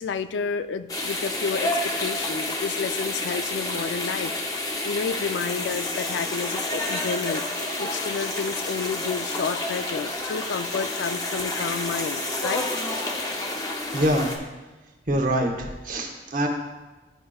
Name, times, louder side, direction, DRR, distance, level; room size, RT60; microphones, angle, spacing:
voice 1, 0.0-7.5 7.8-12.7, left 5 dB, 85° left, 12 dB, 0.3 m, -30 dB
sound 1, 0.9-14.4, left 1 dB, 20° left, 0.6 m, -29 dB
voice 2, 13.9-14.4 15.1-16.5, right 1 dB, 45° right, 2 dB, 0.9 m, -24 dB
11.0 x 4.9 x 2.3 m, 1.2 s
head